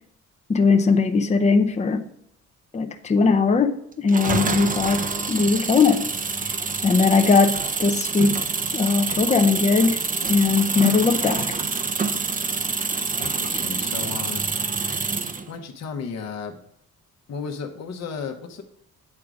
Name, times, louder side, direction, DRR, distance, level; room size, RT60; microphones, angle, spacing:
voice 1, 0.5-2.1 2.7-6.0 6.8-8.4 8.7-10.0 10.3-11.5, left 4 dB, 25° left, 7 dB, 0.6 m, -19 dB
sound 1, 4.1-15.5, right 4 dB, 25° right, 0.7 m, -26 dB
voice 2, 13.1-14.4 15.5-16.6 17.3-18.6, left 5 dB, 60° left, 4 dB, 1.0 m, -34 dB
8.6 x 3.8 x 4.8 m, 0.73 s
cardioid pair, 90°, 30 cm